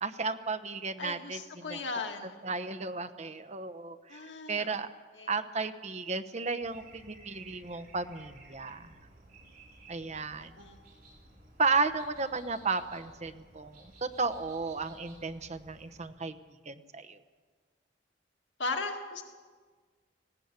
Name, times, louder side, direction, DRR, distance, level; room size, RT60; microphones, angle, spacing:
voice 1, 0.0-1.8 2.4-4.2 4.5-4.9 5.3-8.9 9.9-10.5 11.6-16.3 16.7-17.2, right 4 dB, 40° right, 10 dB, 1.0 m, -34 dB
voice 2, 1.0-2.3 4.1-4.8 5.1-5.3 10.1-10.8 18.6-19.2, left 3 dB, 85° left, 3 dB, 2.1 m, -37 dB
sound 1, 6.6-16.1, right 2 dB, 55° right, 5.7 m, -56 dB
19.0 x 17.0 x 8.3 m, 1.5 s
head